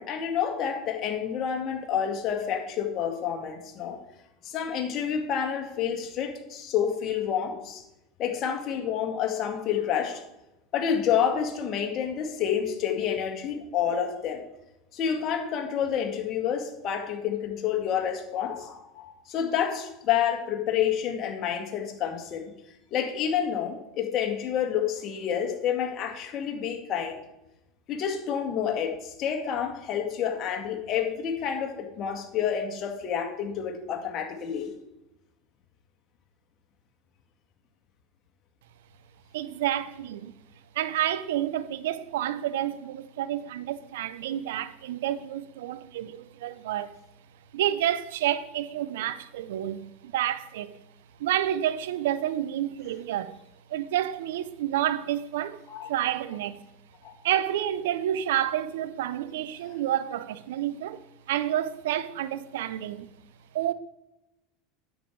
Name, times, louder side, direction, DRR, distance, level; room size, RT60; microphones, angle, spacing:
voice 1, 0.0-4.0 4.4-7.8 8.2-10.2 10.7-14.4 14.9-22.5 22.9-27.2 27.9-34.7 55.7-55.9 57.0-57.1 59.6-59.8, left 8 dB, 50° left, 1.9 m, -29 dB
voice 2, 39.3-40.3 40.7-46.9 47.5-50.7 51.2-53.4 53.7-55.6 55.9-56.6 57.2-61.0 61.3-63.1 63.5-63.7, right 12 dB, 80° right, 0.6 m, -29 dB
8.9 x 7.3 x 4.6 m
hypercardioid pair, 95°, 0 cm